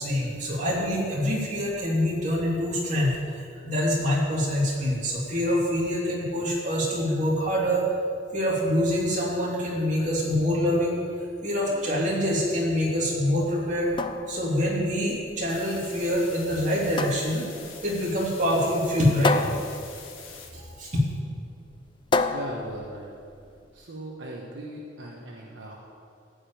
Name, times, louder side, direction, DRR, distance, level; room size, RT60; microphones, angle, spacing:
voice 1, 0.0-7.9 8.3-11.0 11.4-13.9 14.3-17.5 17.8-19.5 20.2-20.3 20.5-21.0, equal, 40° right, -5 dB, 3.0 m, -25 dB
sound 1, 13.7-23.7, left 3 dB, 25° left, 0.4 m, -32 dB
sound 2, 15.5-20.5, left 6 dB, 85° left, 1.7 m, -45 dB
voice 2, 22.3-23.1 23.7-25.8, right 1 dB, 65° right, -2 dB, 1.3 m, -38 dB
15.0 x 5.2 x 9.1 m, 2.4 s
head